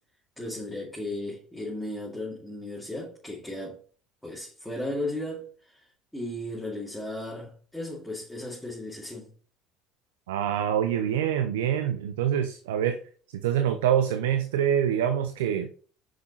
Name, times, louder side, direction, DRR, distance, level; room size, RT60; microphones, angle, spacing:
voice 1, 0.4-3.8 4.2-5.8 6.1-9.3, left 1 dB, 5° left, 2.4 m, -35 dB
voice 2, 10.3-13.0 13.4-15.7, right 9 dB, 90° right, 0.6 m, -25 dB
6.4 x 5.8 x 4.2 m
supercardioid pair, 85°, 0 cm